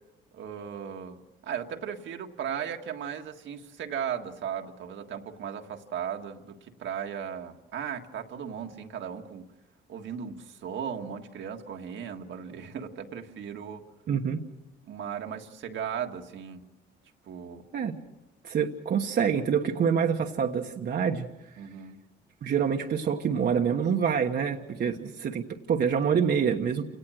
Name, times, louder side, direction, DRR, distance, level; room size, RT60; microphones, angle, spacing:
voice 1, 0.3-9.5 9.9-13.9 14.8-16.7 17.2-17.7 21.6-22.0, right 8 dB, 70° right, 4 dB, 1.7 m, -36 dB
voice 2, 14.1-14.4 17.7-17.9 18.4-21.3 22.4-26.9, right 7 dB, 55° right, 2 dB, 1.3 m, -26 dB
28.0 x 18.0 x 6.4 m, 1.0 s
cardioid pair, 90°, 20 cm